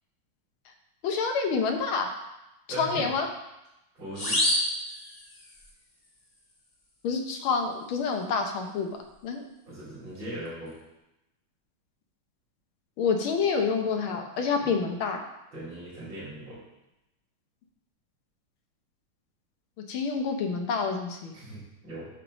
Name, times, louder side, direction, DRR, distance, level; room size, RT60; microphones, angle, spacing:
voice 1, 1.0-2.1 2.8-3.3 7.0-8.9 9.2-9.4 13.0-15.3 19.9-21.3, left 5 dB, 85° left, 4 dB, 1.8 m, -27 dB
voice 2, 2.7-3.1 3.9-4.4 9.7-10.7 14.6-14.8 15.5-16.6 21.3-22.1, right 1 dB, 65° right, -13 dB, 3.8 m, -39 dB
sound 1, 4.2-5.7, left 1 dB, 25° left, 1.0 m, -28 dB
8.9 x 3.3 x 6.2 m, 0.91 s
omnidirectional pair, 2.2 m